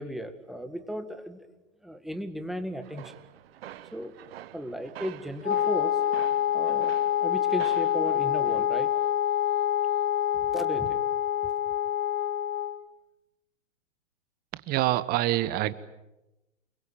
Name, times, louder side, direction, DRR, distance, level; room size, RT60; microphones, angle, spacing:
voice 1, 0.0-1.4 1.8-3.1 3.9-4.2 4.5-6.0 6.5-8.9 10.5-11.0 11.4-11.5, equal, ahead, 8 dB, 1.9 m, -35 dB
sound 1, 2.8-8.0, right 12 dB, 50° right, 1.4 m, -46 dB
Wind instrument woodwind instrument, 5.4-12.9, left 10 dB, 90° left, 1.2 m, -26 dB
voice 2, 14.5-15.7, right 15 dB, 25° right, 17 dB, 1.2 m, -26 dB
29.5 x 21.5 x 9.0 m, 0.97 s
hypercardioid pair, 125°, 38 cm